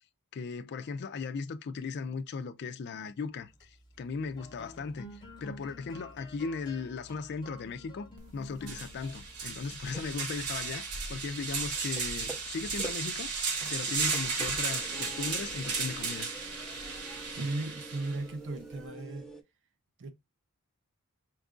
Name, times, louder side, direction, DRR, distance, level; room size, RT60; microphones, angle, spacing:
voice 1, 0.3-8.1 8.3-10.8 11.1-16.3, left 4 dB, 50° left, 0.4 m, -37 dB
sound 1, 3.4-13.0, equal, 20° left, 0.9 m, -52 dB
sound 2, 8.2-8.3 8.6-18.2, right 5 dB, 90° right, 1.1 m, -35 dB
sound 3, 9.9-10.4 10.7-19.4, right 2 dB, ahead, 0.5 m, -47 dB
voice 2, 17.3-19.3 20.0-20.1, right 2 dB, 55° right, 0.6 m, -36 dB
4.5 x 2.4 x 3.7 m
head